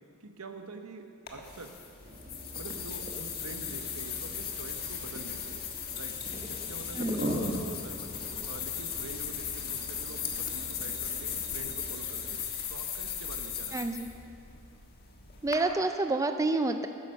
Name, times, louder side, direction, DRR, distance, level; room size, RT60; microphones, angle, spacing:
voice 1, 0.2-1.8 2.6-5.6 5.9-6.2 6.4-8.1 8.5-12.4 12.7-13.8, right 3 dB, 80° right, 6 dB, 1.0 m, -46 dB
sound 1, 1.3-15.6, left 8 dB, 45° left, 1.3 m, -37 dB
sound 2, 2.0-12.4, equal, 40° right, 1.3 m, -41 dB
voice 2, 6.9-7.2 13.7-14.1 15.4-16.9, right 2 dB, 15° right, 7 dB, 0.4 m, -28 dB
10.5 x 9.9 x 6.5 m, 2.5 s
head